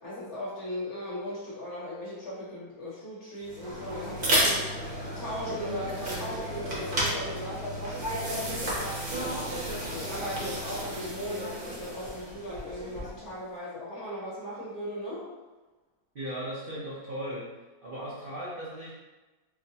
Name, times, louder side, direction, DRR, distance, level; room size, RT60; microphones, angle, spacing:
voice 1, 0.0-4.6 5.1-9.0 9.9-15.3, equal, 50° left, -6 dB, 1.0 m, -38 dB
sound 1, 3.4-13.3, equal, 40° right, 0.8 m, -32 dB
voice 2, 16.1-17.5 17.8-18.9, equal, 75° right, -8 dB, 0.5 m, -37 dB
4.5 x 2.1 x 2.7 m, 1.2 s
omnidirectional pair, 1.9 m